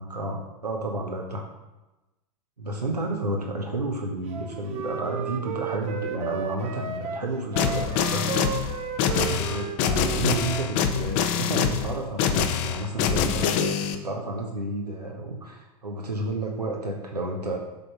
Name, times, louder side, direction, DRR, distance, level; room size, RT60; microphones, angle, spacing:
voice 1, 0.0-1.5 2.6-8.4 9.0-17.6, right 2 dB, 85° right, 0 dB, 1.0 m, -31 dB
Wind instrument woodwind instrument, 4.3-10.7, right 7 dB, 35° right, 0.8 m, -34 dB
sound 1, 7.6-14.0, left 7 dB, 40° left, 0.7 m, -25 dB
7.3 x 3.8 x 5.9 m, 1.0 s
figure-of-eight pair, 95°, 20 cm